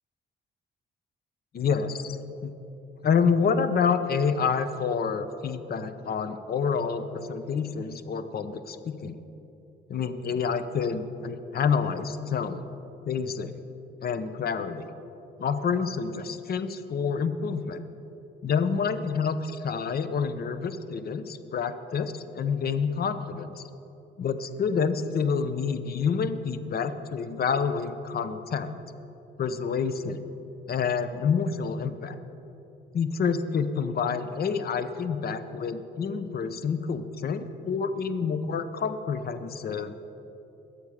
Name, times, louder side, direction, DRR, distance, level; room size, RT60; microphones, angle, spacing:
voice 1, 1.5-2.2 2.4-2.5 3.0-9.2 9.9-12.6 13.1-13.6 14.0-14.9 15.4-17.8 18.4-23.6 24.2-28.7 29.4-30.2 30.7-32.1 32.9-39.9, left 6 dB, 50° left, 11 dB, 0.8 m, -28 dB
22.0 x 8.2 x 4.9 m, 2.9 s
cardioid pair, 90°, 20 cm